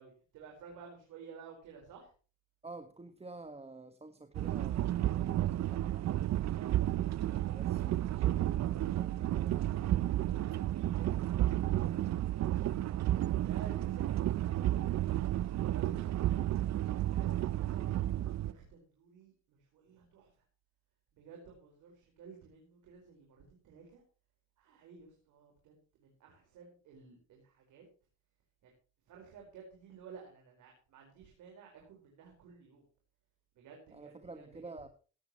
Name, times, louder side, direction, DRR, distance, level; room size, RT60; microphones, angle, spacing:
voice 1, 0.0-2.1 6.4-6.8 10.3-12.9 13.4-15.2 15.6-16.7 17.2-20.4 21.1-24.0 24.6-27.8 28.6-28.7 29.1-32.8 33.5-34.4, right 6 dB, 85° right, 1 dB, 4.7 m, -54 dB
voice 2, 2.6-6.2 6.9-10.1 33.9-34.9, right 3 dB, 20° right, 8 dB, 1.5 m, -50 dB
sound 1, 4.3-18.5, right 13 dB, 60° right, 0.6 m, -32 dB
16.5 x 12.5 x 3.0 m, 0.37 s
cardioid pair, 90°, 30 cm